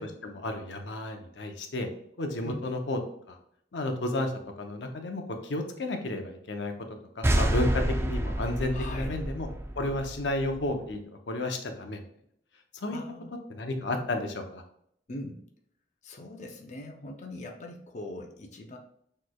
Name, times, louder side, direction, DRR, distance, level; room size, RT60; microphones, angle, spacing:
voice 1, 0.0-1.9 2.2-3.0 3.3-3.4 3.7-6.7 7.2-9.5 9.8-11.0 11.3-12.1 12.7-13.0 13.5-14.6, left 2 dB, 80° left, 5 dB, 0.7 m, -32 dB
sound 1, 7.2-10.7, right 1 dB, 15° right, 0.4 m, -28 dB
voice 2, 8.7-9.2 12.9-13.3 15.1-15.4 16.0-18.8, left 1 dB, 40° left, 1 dB, 0.5 m, -41 dB
6.2 x 3.2 x 2.2 m, 0.70 s
head